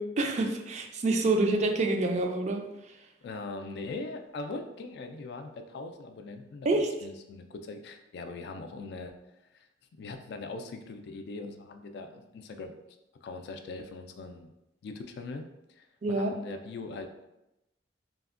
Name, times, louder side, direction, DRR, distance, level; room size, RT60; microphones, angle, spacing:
voice 1, 0.0-2.6 6.6-6.9 16.0-16.3, right 2 dB, 40° right, 4 dB, 0.3 m, -27 dB
voice 2, 3.2-6.7 7.0-9.1 9.5-9.7 10.0-12.7 13.2-14.5 14.8-17.1, left 3 dB, 60° left, 6 dB, 0.3 m, -41 dB
3.3 x 2.1 x 2.4 m, 0.91 s
head